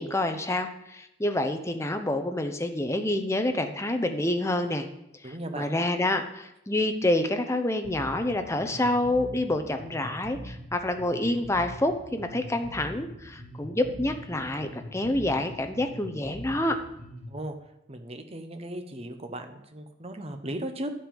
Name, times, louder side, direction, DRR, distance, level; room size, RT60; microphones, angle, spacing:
voice 1, 0.0-4.9 5.2-16.8, left 1 dB, 15° left, 7 dB, 0.8 m, -28 dB
voice 2, 5.2-5.8 17.3-17.6 17.9-20.9, right 1 dB, 30° right, 6 dB, 1.1 m, -36 dB
Bass guitar, 7.8-17.4, equal, 45° left, 3.5 m, -43 dB
11.0 x 7.7 x 5.4 m, 0.83 s
head